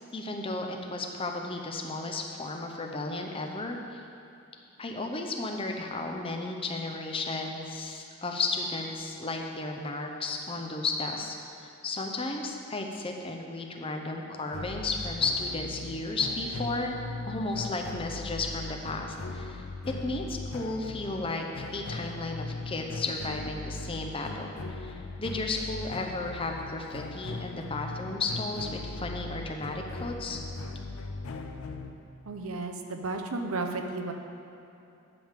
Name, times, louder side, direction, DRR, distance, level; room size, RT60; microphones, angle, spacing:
voice 1, 0.1-4.0 4.8-17.0 17.3-30.4, left 3 dB, 25° left, 2 dB, 0.6 m, -34 dB
sound 1, 14.5-31.9, left 3 dB, 75° left, 0.5 m, -39 dB
voice 2, 32.3-34.1, right 3 dB, 75° right, 5 dB, 0.7 m, -33 dB
10.5 x 3.6 x 7.3 m, 2.8 s
head